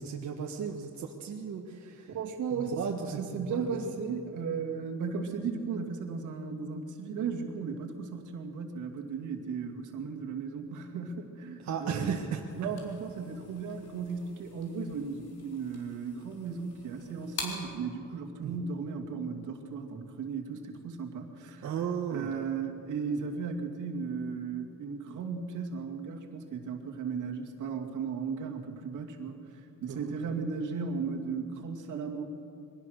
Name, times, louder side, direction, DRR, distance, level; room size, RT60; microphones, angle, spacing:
voice 1, 0.0-2.2 2.5-3.8 11.6-12.4 18.4-18.5 21.6-22.3 29.9-30.1, right 7 dB, 65° right, 0 dB, 1.6 m, -35 dB
voice 2, 2.1-12.1 12.6-21.7 22.1-32.2, right 5 dB, 85° right, 2 dB, 2.5 m, -36 dB
sound 1, 12.5-17.8, left 3 dB, 55° left, 4.1 m, -45 dB
23.0 x 18.0 x 6.6 m, 2.5 s
cardioid pair, 150°, 30 cm